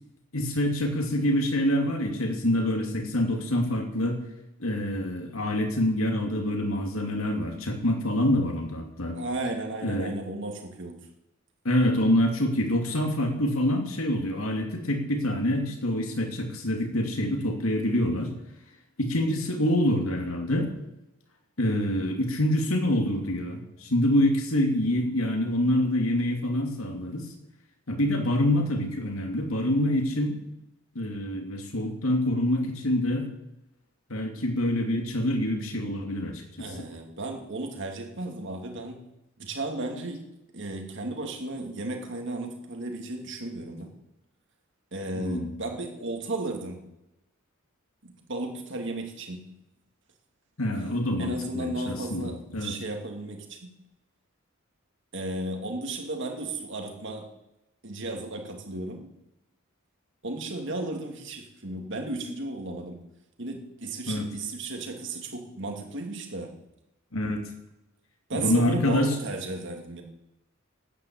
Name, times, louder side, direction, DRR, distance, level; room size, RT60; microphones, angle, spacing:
voice 1, 0.3-4.2 4.6-9.2 9.8-10.1 11.6-18.3 19.0-20.7 21.6-27.3 27.9-30.4 30.9-33.3 34.1-36.7 45.1-45.5 50.6-52.7 64.1-64.3 67.1-67.5 68.3-69.2, left 1 dB, 80° left, 3 dB, 2.7 m, -26 dB
voice 2, 9.1-11.0 36.6-39.0 39.4-40.2 40.5-43.9 44.9-46.9 48.0-49.5 51.2-53.8 55.1-57.3 57.8-59.1 60.2-63.0 63.4-66.5 68.3-70.0, right 2 dB, 60° right, 2 dB, 2.8 m, -34 dB
12.0 x 9.4 x 8.7 m, 0.93 s
head